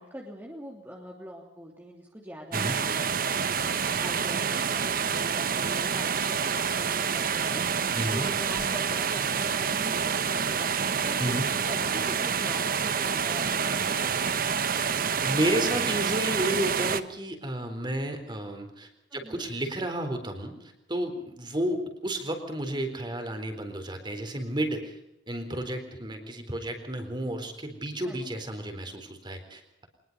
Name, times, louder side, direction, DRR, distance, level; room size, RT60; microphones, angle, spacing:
voice 1, 0.0-11.3 11.6-14.1 19.1-19.5 28.1-28.2, equal, 10° right, -2 dB, 3.0 m, -43 dB
sound 1, 2.5-17.0, right 6 dB, 55° right, 1.1 m, -28 dB
voice 2, 7.9-8.3 11.2-11.5 15.2-25.0 25.3-29.9, right 1 dB, 25° right, 5 dB, 4.1 m, -32 dB
24.0 x 20.5 x 5.5 m, 0.84 s
head